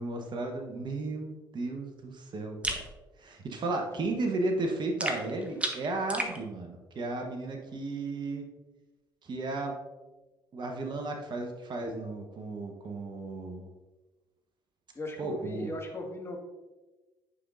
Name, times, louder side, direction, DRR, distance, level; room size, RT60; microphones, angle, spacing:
voice 1, 0.0-2.8 3.2-8.5 9.2-9.7 10.5-13.7 15.2-15.7, right 2 dB, 45° right, 3 dB, 1.1 m, -34 dB
sound 1, 2.6-2.9 5.0-6.4, right 1 dB, 10° right, 1.3 m, -33 dB
voice 2, 14.9-16.4, left 1 dB, 25° left, 0 dB, 1.9 m, -37 dB
9.8 x 5.4 x 2.6 m, 1.2 s
hypercardioid pair, 50°, 11 cm